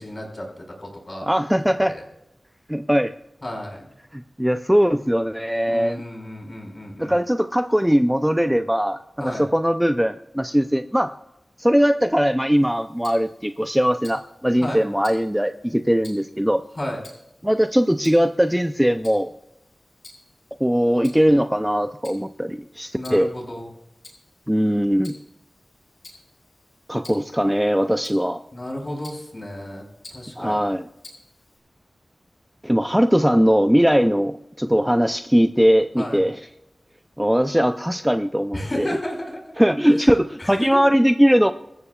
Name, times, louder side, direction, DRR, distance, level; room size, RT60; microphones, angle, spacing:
voice 1, 0.0-1.3 1.6-2.0 3.4-3.9 5.7-7.2 9.2-9.5 14.6-14.8 16.8-17.0 22.9-23.7 28.5-29.8 30.1-30.7 35.9-36.2 38.5-39.4 39.8-40.1 40.4-40.7, left 1 dB, 35° left, 0 dB, 5.2 m, -32 dB
voice 2, 1.3-1.9 2.7-3.1 4.1-6.0 7.0-11.1 11.6-16.6 17.4-19.3 20.6-23.3 24.5-25.2 26.9-28.4 30.4-30.8 32.6-36.4 37.2-38.9 39.6-41.5, equal, 5° right, 8 dB, 0.5 m, -20 dB
Tick-tock, 12.5-31.6, left 2 dB, 70° left, 6.1 m, -51 dB
24.5 x 14.5 x 2.4 m, 0.89 s
wide cardioid pair, 85°, 0 cm